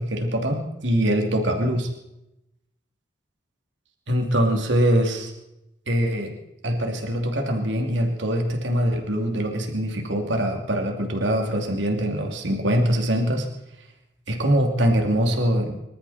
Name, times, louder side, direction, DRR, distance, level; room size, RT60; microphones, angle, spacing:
voice 1, 0.0-1.9 4.1-5.3 5.9-6.3 6.6-13.5 14.3-15.7, equal, 80° right, 3 dB, 2.7 m, -23 dB
25.5 x 13.0 x 4.2 m, 0.88 s
head